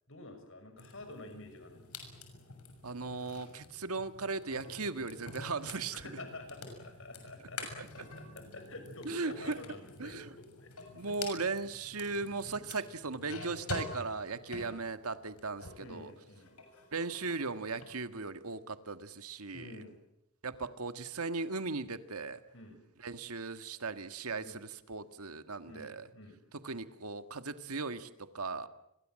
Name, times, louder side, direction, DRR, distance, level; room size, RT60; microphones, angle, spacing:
voice 1, 0.1-2.1 5.9-10.7 14.4-14.8 15.8-16.6 19.5-20.0 22.5-22.8 24.4-24.6 25.7-26.4, left 2 dB, 60° left, 7 dB, 6.0 m, -49 dB
sound 1, 0.8-15.9 16.2-17.9, left 3 dB, 85° left, 6.6 m, -47 dB
voice 2, 2.8-6.1 9.0-9.6 10.0-10.3 10.9-16.1 16.9-19.7 20.4-22.4 23.0-26.1 26.6-28.7, right 3 dB, 85° right, 10 dB, 1.7 m, -37 dB
29.5 x 22.5 x 7.6 m, 0.81 s
head